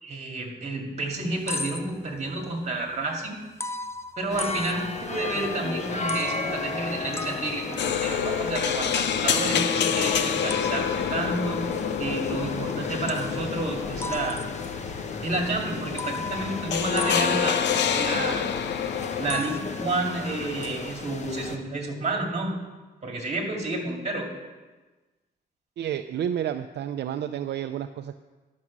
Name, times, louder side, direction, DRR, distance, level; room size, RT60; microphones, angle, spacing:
voice 1, 0.0-3.4 4.2-11.6 12.0-14.4 15.2-17.6 17.9-18.4 19.2-22.6 23.0-24.3, right 2 dB, 40° right, 1 dB, 2.3 m, -30 dB
sound 1, 1.1-2.4 3.6-5.4 5.9-12.6 13.1-13.6 14.0-15.0 15.4-15.5 16.0-18.7 19.0-19.6, left 3 dB, 15° left, 0.4 m, -38 dB
sound 2, 4.3-21.6, left 3 dB, 40° left, 1.0 m, -33 dB
sound 3, 7.8-19.4, left 9 dB, 75° left, 0.6 m, -28 dB
voice 2, 25.8-28.1, right 9 dB, 70° right, 8 dB, 0.4 m, -30 dB
10.5 x 6.1 x 7.4 m, 1.2 s
cardioid pair, 125°, 18 cm